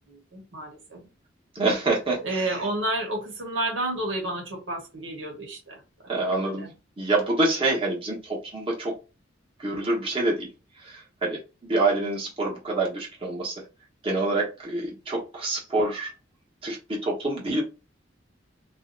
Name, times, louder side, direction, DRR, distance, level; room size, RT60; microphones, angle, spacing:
voice 1, 0.1-1.0 2.2-5.8 6.2-6.7, right 1 dB, 85° right, 1.2 m, -31 dB
voice 2, 1.5-2.6 6.1-8.9 9.6-10.5 10.9-13.5 14.0-16.1 16.6-17.6, right 2 dB, 30° right, 1.1 m, -27 dB
2.7 x 2.2 x 3.8 m
head